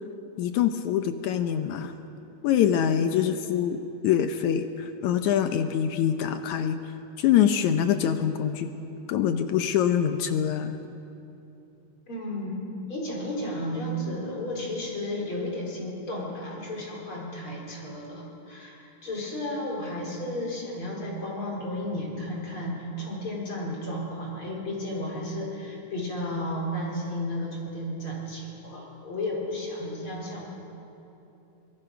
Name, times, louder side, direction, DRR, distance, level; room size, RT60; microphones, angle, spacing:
voice 1, 0.4-1.9 2.4-6.8 7.2-8.7 9.1-10.8, left 9 dB, 75° left, 8 dB, 2.0 m, -24 dB
voice 2, 12.1-30.4, left 1 dB, 40° left, -2 dB, 4.8 m, -33 dB
24.0 x 21.5 x 5.9 m, 2.9 s
omnidirectional pair, 3.7 m